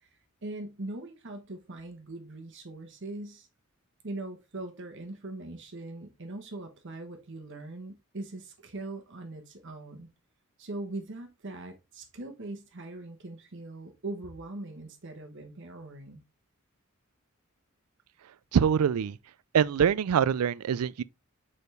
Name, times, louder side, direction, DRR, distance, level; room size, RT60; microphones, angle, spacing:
voice 1, 0.0-3.5 4.0-10.1 10.6-16.2, right 2 dB, 55° right, 1.1 m, -41 dB
voice 2, 18.5-19.2 19.5-21.0, right 7 dB, 85° right, 0.4 m, -24 dB
6.8 x 4.8 x 3.2 m
head